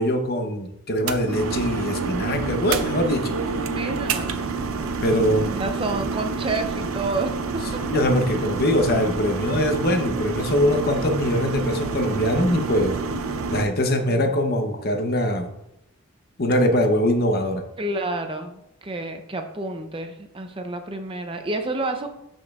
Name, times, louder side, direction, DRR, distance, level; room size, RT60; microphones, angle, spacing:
voice 1, 0.0-3.3 5.0-5.5 7.9-13.0 13.5-15.5 16.4-17.6, equal, 45° left, 5 dB, 0.8 m, -22 dB
sound 1, 1.0-13.7, right 4 dB, 70° right, 0.6 m, -28 dB
voice 2, 3.3-7.4 13.5-14.3 17.8-22.1, right 2 dB, 25° right, 6 dB, 0.5 m, -30 dB
12.5 x 5.3 x 2.4 m, 0.83 s
head